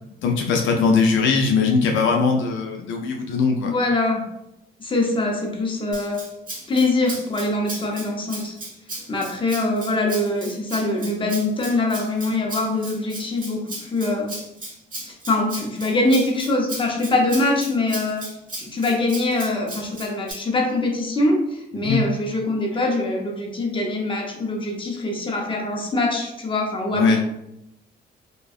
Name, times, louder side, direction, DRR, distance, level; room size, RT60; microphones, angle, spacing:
voice 1, 0.2-3.7 21.7-22.0 26.9-27.2, left 4 dB, 75° left, 2 dB, 0.4 m, -20 dB
voice 2, 3.6-4.2 4.8-6.2 6.7-8.5 9.1-14.3 15.3-18.3 18.6-27.2, left 2 dB, 25° left, 0 dB, 0.6 m, -23 dB
Rattle (instrument), 5.9-20.3, right 2 dB, 45° right, 1.1 m, -36 dB
2.6 x 2.2 x 2.4 m, 0.83 s
cardioid pair, 90°, 20 cm